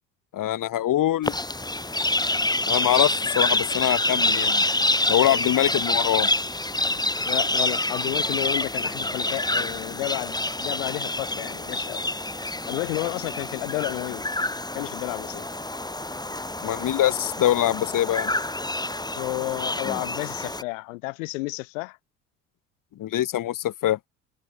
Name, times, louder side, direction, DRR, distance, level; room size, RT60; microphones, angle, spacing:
voice 1, 0.3-1.4 2.7-4.6 5.1-6.3 16.6-18.3 23.0-24.0, left 13 dB, 55° left, 3.3 m, -23 dB
sound 1, 1.2-20.6, left 2 dB, 10° left, 4.8 m, -27 dB
voice 2, 7.3-12.1 12.7-14.2 14.7-15.5 19.2-22.0, left 26 dB, 80° left, 1.9 m, -31 dB
open air
hypercardioid pair, 60°, 38 cm